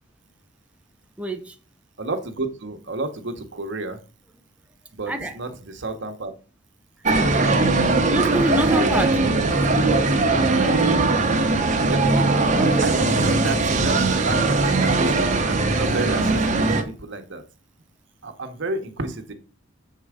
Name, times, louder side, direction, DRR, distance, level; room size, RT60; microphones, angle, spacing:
voice 1, 1.2-1.6 5.1-5.3 8.1-9.2 12.1-12.3 12.5-12.9, equal, 5° right, 0.6 m, -26 dB
voice 2, 2.0-4.0 4.9-6.3 11.8-12.0 12.8-17.4 18.2-19.3, right 2 dB, 65° right, 1.1 m, -31 dB
sound 1, 7.0-16.8, right 3 dB, 40° right, 1.0 m, -20 dB
6.7 x 4.7 x 4.9 m
head